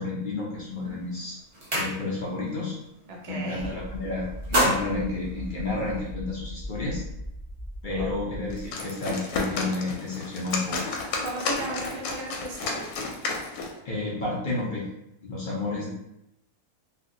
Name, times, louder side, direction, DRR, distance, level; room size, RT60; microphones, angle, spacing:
voice 1, 0.0-1.4 1.7-2.7 3.3-7.0 7.8-10.9 13.8-14.9 15.2-15.9, left 3 dB, 60° left, -5 dB, 0.5 m, -31 dB
sound 1, 0.7-0.9 1.3-2.4 2.8-3.0 3.3-3.9 4.2-6.1, equal, 45° right, 0.4 m, -29 dB
voice 2, 3.1-3.8 7.9-8.3 11.2-13.0, right 2 dB, 60° right, -2 dB, 0.9 m, -36 dB
sound 2, 3.6-8.7, equal, 25° right, 0.8 m, -38 dB
sound 3, 8.5-13.8, left 3 dB, 80° left, 1.1 m, -32 dB
2.7 x 2.6 x 2.5 m, 0.84 s
omnidirectional pair, 1.6 m